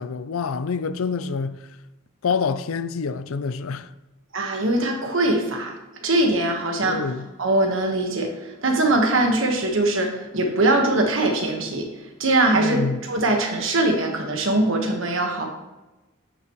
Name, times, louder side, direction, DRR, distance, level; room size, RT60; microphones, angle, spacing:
voice 1, 0.0-1.7 2.2-3.9 6.8-7.3 12.5-13.0, left 5 dB, 75° left, 0.5 m, -27 dB
voice 2, 4.3-5.7 6.0-7.1 7.4-11.9 12.2-15.5, right 2 dB, 65° right, 1.4 m, -22 dB
10.0 x 6.3 x 3.1 m
head